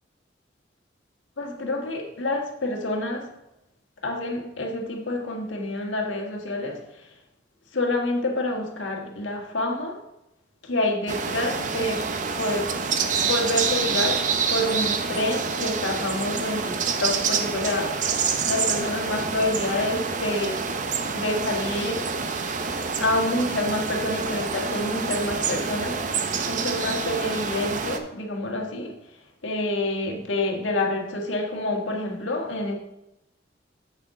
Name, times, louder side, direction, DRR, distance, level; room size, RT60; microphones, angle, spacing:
voice 1, 1.4-3.3 4.0-7.1 7.7-10.0 10.6-12.9 13.2-20.8 21.1-22.1 23.0-29.2 29.4-32.7, left 2 dB, 85° left, 1 dB, 1.6 m, -28 dB
sound 1, 11.1-28.0, right 5 dB, 40° right, 0.6 m, -27 dB
7.8 x 7.0 x 3.7 m, 0.86 s
head